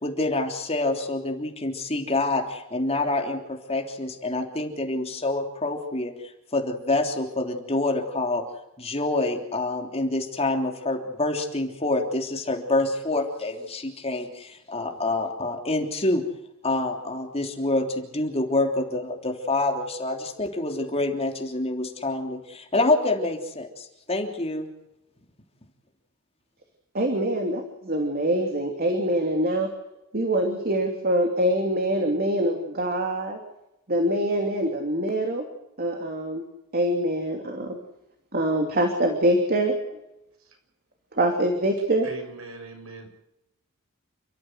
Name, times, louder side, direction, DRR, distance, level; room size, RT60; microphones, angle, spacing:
voice 1, 0.0-6.1 6.5-8.4 8.8-16.2 16.6-24.7, left 2 dB, 30° left, 3 dB, 3.4 m, -27 dB
voice 2, 26.9-29.7 30.1-33.4 33.9-35.4 35.8-36.4 36.7-37.8 38.3-39.7 41.2-42.1, right 1 dB, 45° right, 4 dB, 3.0 m, -24 dB
voice 3, 42.0-43.1, right 3 dB, 75° right, 4 dB, 7.0 m, -39 dB
29.5 x 14.0 x 8.0 m, 0.89 s
head